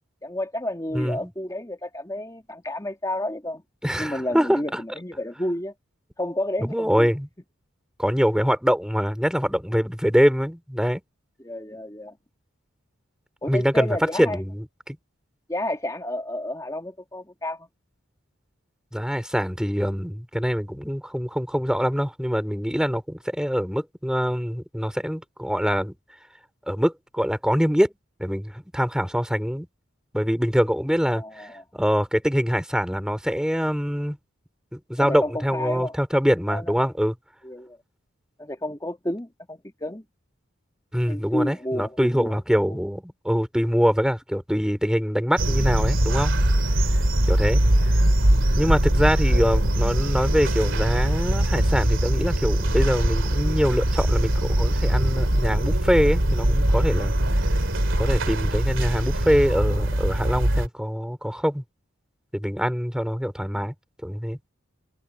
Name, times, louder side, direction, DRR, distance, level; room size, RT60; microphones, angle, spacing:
voice 1, 0.2-3.6 4.0-5.7 6.2-7.1 11.4-12.2 13.4-14.4 15.5-17.7 31.1-31.6 35.0-36.0 36.5-36.9 37.4-37.8 38.4-40.0 41.1-42.8 47.2-47.3, left 1 dB, 15° left, 1.9 m, -31 dB
voice 2, 0.9-1.3 3.8-4.6 6.7-7.3 8.0-11.0 13.5-15.0 18.9-25.9 26.7-27.9 28.2-29.7 30.1-34.2 34.7-37.1 40.9-46.3 47.3-47.6 48.5-57.1 58.0-61.6 62.3-63.7 64.0-64.4, equal, 5° right, 3.0 m, -24 dB
sound 1, 45.4-60.7, right 1 dB, 65° right, 2.9 m, -22 dB
head